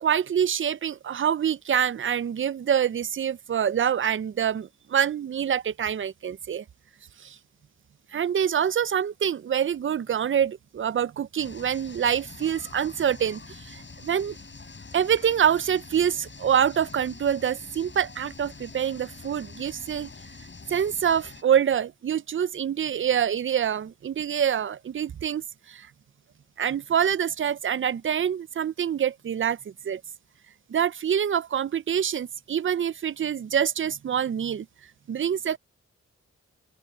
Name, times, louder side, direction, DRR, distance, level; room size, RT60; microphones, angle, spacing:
voice 1, 0.0-6.6 7.2-7.4 8.1-14.4 14.9-20.1 20.7-25.9 26.6-29.6 29.8-30.0 30.7-34.7 35.1-35.6, right 8 dB, 45° right, 0.5 m, -26 dB
sound 1, 11.4-21.4, left 4 dB, 40° left, 4.7 m, -45 dB
open air
wide cardioid pair, 95°, 29 cm